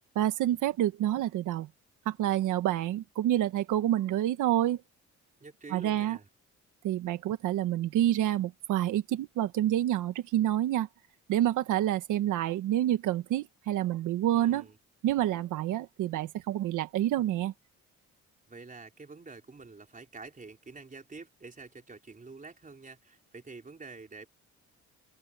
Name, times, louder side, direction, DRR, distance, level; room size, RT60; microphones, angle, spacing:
voice 1, 0.1-1.7 2.0-4.8 5.7-6.2 6.8-10.9 11.3-14.7 15.0-17.5, right 12 dB, 85° right, 1.4 m, -28 dB
voice 2, 5.4-6.3 14.3-14.8 18.5-24.3, right 4 dB, 25° right, 4.5 m, -47 dB
cardioid pair, 90°, 30 cm